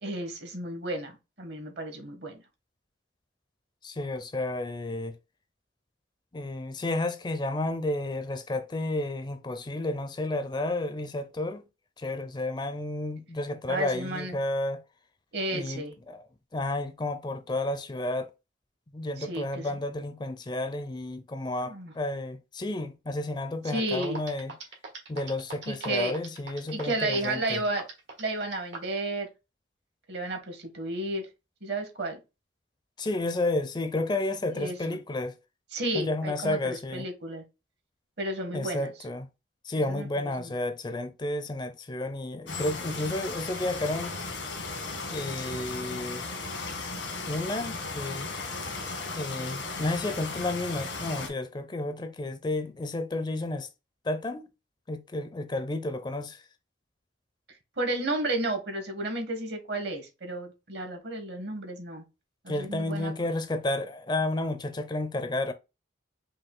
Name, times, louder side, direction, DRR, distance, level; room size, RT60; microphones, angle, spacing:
voice 1, 0.0-2.4 13.7-14.4 15.3-15.9 19.2-19.7 21.6-21.9 23.6-24.2 25.6-26.1 26.7-27.8 28.2-29.3 30.1-31.3 31.6-32.2 34.5-35.0 35.7-37.4 38.2-38.9 39.8-40.1 40.4-40.5 57.8-62.0 62.4-63.3, right 2 dB, 65° right, 1.2 m, -32 dB
voice 2, 3.8-5.1 6.3-11.6 12.0-14.8 15.5-16.2 16.5-18.3 18.9-24.5 25.1-27.6 33.0-35.3 35.9-37.1 38.5-39.3 39.6-44.2 45.1-46.2 47.3-48.3 49.2-53.7 54.0-54.5 54.9-56.4 62.5-65.5, left 2 dB, 25° left, 0.4 m, -31 dB
sound 1, 23.7-23.8 24.0-29.0, right 4 dB, 85° right, 1.6 m, -41 dB
sound 2, 42.5-51.3, left 3 dB, 90° left, 1.5 m, -36 dB
5.4 x 2.4 x 3.7 m
head